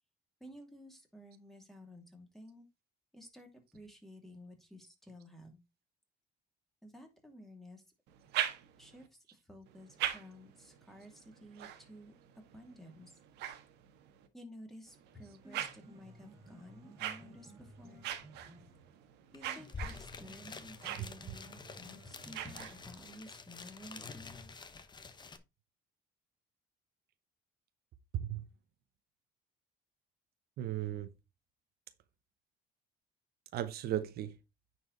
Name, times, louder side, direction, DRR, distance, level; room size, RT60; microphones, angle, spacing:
voice 1, 0.4-2.7 3.1-5.6 6.8-7.8 8.8-13.1 14.3-18.1 19.3-21.5 21.8-24.5, left 1 dB, ahead, 2.7 m, -53 dB
sound 1, 8.1-9.1 9.7-14.3 14.9-23.1, right 11 dB, 85° right, 1.4 m, -43 dB
Piano, 15.3-23.2, right 1 dB, 20° right, 2.0 m, -57 dB
sound 2, 19.3-19.4 19.6-25.4, left 4 dB, 25° left, 1.1 m, -48 dB
voice 2, 20.9-21.3 28.1-28.4 30.6-31.1 33.5-34.3, right 12 dB, 65° right, 0.9 m, -36 dB
9.5 x 4.7 x 4.0 m
cardioid pair, 110°, 17 cm